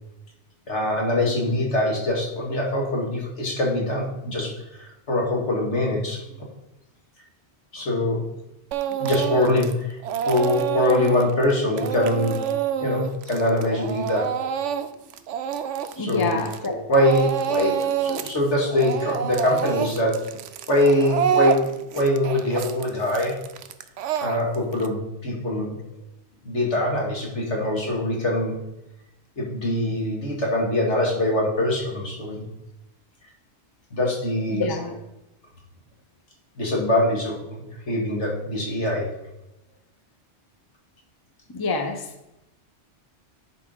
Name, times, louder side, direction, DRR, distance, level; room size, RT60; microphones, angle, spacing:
voice 1, 0.7-6.2 7.7-8.2 9.0-10.0 10.3-12.4 12.8-14.3 16.0-16.4 16.9-20.2 20.7-23.4 24.2-25.7 26.4-28.5 29.4-32.4 33.9-34.6 36.6-39.1, left 1 dB, 75° left, -2 dB, 2.2 m, -23 dB
Speech / Crying sobbing, 8.7-9.7 10.0-16.7 16.9-18.4 18.6-24.9, right 8 dB, 90° right, 0.9 m, -27 dB
voice 2, 16.0-16.8 34.5-35.0 41.5-42.1, left 3 dB, 20° left, 4 dB, 0.7 m, -26 dB
10.5 x 4.7 x 3.9 m, 0.90 s
omnidirectional pair, 1.2 m